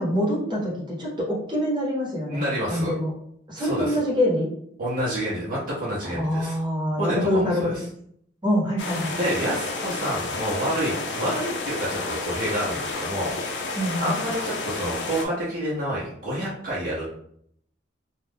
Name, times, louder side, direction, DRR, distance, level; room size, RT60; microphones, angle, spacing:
voice 1, 0.0-2.4 2.7-3.1 3.5-4.5 6.0-7.7 8.4-9.1 13.7-14.1, equal, 25° right, -6 dB, 1.0 m, -25 dB
voice 2, 2.3-2.9 3.6-4.0 4.8-6.6 7.0-7.8 9.2-13.7 14.0-17.2, equal, 50° right, -7 dB, 0.8 m, -28 dB
sound 1, 8.8-15.2, left 3 dB, 65° left, 0.5 m, -31 dB
2.5 x 2.3 x 3.4 m, 0.68 s
head